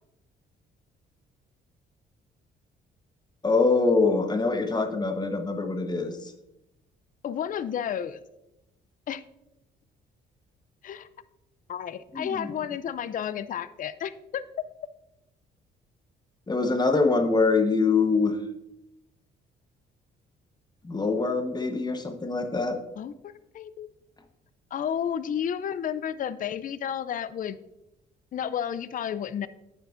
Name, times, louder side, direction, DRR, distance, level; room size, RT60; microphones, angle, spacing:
voice 1, 3.4-6.3 12.1-12.5 16.5-18.4 20.8-22.8, left 3 dB, 20° left, 6 dB, 1.0 m, -24 dB
voice 2, 7.2-8.2 9.1-9.2 10.8-11.1 11.7-14.5 23.0-23.9 24.7-27.6 28.3-29.5, left 9 dB, 45° left, 14 dB, 0.4 m, -32 dB
8.8 x 7.7 x 2.5 m, 0.88 s
cardioid pair, 90°, 20 cm